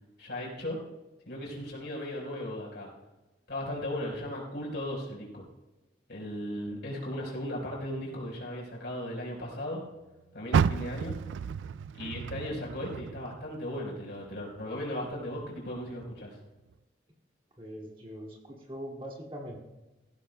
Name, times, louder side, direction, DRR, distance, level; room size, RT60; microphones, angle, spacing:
voice 1, 0.2-0.8 1.3-2.9 3.5-5.5 6.1-9.8 10.3-11.2 11.9-16.4, left 1 dB, 65° left, -2 dB, 4.6 m, -36 dB
Car, 10.5-13.8 14.2-15.5 16.0-16.1 16.7-16.8, right 7 dB, 85° right, 0.3 m, -31 dB
voice 2, 17.6-19.6, equal, 30° right, -1 dB, 2.3 m, -42 dB
19.0 x 15.5 x 2.3 m, 1.1 s
head